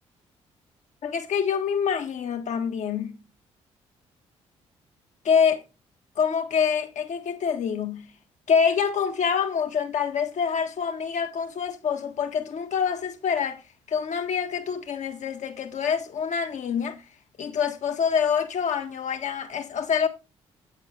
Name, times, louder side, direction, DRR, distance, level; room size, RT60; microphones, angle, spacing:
voice 1, 1.0-3.2 5.2-5.6 6.2-8.1 8.5-13.6 13.9-17.0 17.4-20.1, left 7 dB, 50° left, 1.4 m, -26 dB
8.4 x 8.3 x 3.3 m
figure-of-eight pair, 40°, 15 cm